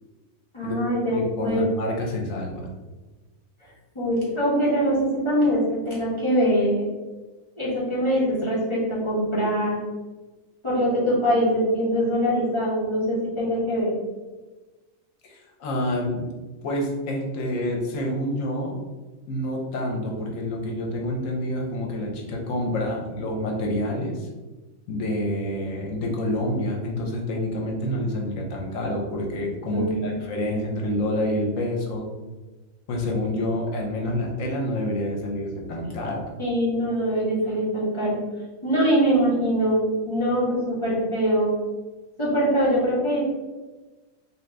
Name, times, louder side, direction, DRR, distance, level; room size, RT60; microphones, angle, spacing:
voice 1, 0.5-1.6 3.9-6.9 7.6-9.8 10.6-13.9 29.7-30.5 36.4-38.2 38.6-41.5 42.2-43.2, equal, 25° left, -8 dB, 0.8 m, -23 dB
voice 2, 1.1-2.7 15.2-16.3 16.6-18.8 19.3-24.3 24.9-32.0 32.9-36.3, left 1 dB, 75° left, -1 dB, 1.1 m, -28 dB
2.8 x 2.6 x 3.3 m, 1.2 s
omnidirectional pair, 1.4 m